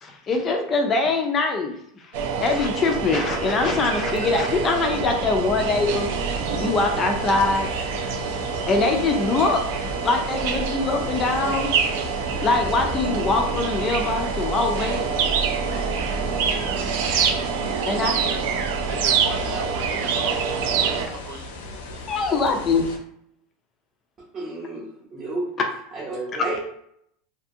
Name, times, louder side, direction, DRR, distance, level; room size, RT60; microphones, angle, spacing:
voice 1, 0.0-1.7 2.4-6.1 6.6-7.7 8.7-9.6 10.0-11.7 12.4-15.1 17.9-18.3 22.1-22.8, left 3 dB, 25° left, 3 dB, 0.3 m, -23 dB
sound 1, 2.1-21.1, right 6 dB, 65° right, 0.4 m, -26 dB
sound 2, 5.7-23.0, left 2 dB, 90° left, 0.5 m, -38 dB
voice 2, 18.1-18.4 18.8-21.6, right 1 dB, 80° right, -2 dB, 1.2 m, -37 dB
voice 3, 24.3-25.5 25.9-26.6, right 2 dB, 25° right, -6 dB, 0.7 m, -31 dB
2.6 x 2.4 x 2.6 m, 0.71 s
supercardioid pair, 160°, 0 cm